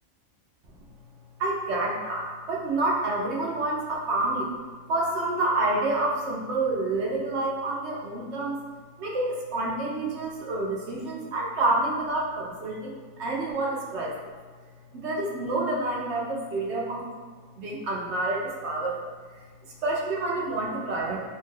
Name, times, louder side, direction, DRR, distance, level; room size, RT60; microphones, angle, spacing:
voice 1, 1.4-4.5 4.9-8.6 9.0-14.3 14.9-17.0 17.6-19.1 19.8-21.2, right 2 dB, 65° right, -3 dB, 0.8 m, -28 dB
2.8 x 2.2 x 3.1 m, 1.5 s
omnidirectional pair, 1.5 m